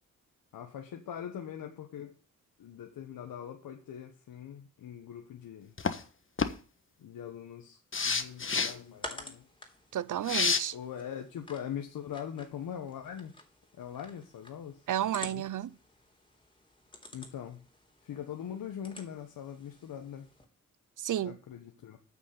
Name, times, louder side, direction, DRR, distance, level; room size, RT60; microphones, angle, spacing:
voice 1, 0.5-2.1 2.6-5.7 7.0-9.5 10.7-13.3 13.8-14.9 15.2-15.4 17.1-17.6 18.0-20.3 21.2-22.0, left 9 dB, 85° left, 1.4 m, -42 dB
sound 1, 5.8-6.0 6.4-6.5 7.9-8.7 10.3-10.6, left 5 dB, 35° left, 1.4 m, -28 dB
sound 2, 7.9-20.5, left 1 dB, 15° left, 3.5 m, -51 dB
voice 2, 9.9-10.7 14.9-15.7 21.0-21.4, right 11 dB, 65° right, 0.7 m, -32 dB
9.3 x 6.2 x 7.8 m
cardioid pair, 55°, 34 cm